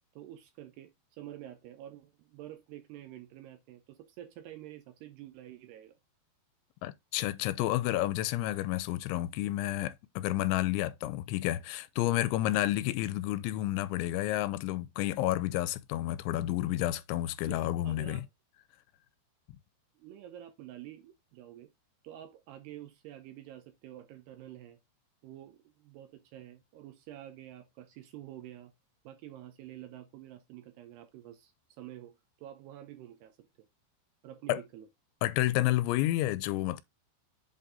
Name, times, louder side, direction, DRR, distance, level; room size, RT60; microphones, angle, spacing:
voice 1, 0.2-6.0 17.4-18.3 20.0-21.7 22.0-24.8 25.2-28.7 29.0-33.7 34.2-34.9, right 12 dB, 75° right, 2.6 m, -48 dB
voice 2, 6.8-18.2 34.5-34.6 35.2-36.8, left 15 dB, 85° left, 2.9 m, -30 dB
8.0 x 4.0 x 3.7 m
omnidirectional pair, 5.3 m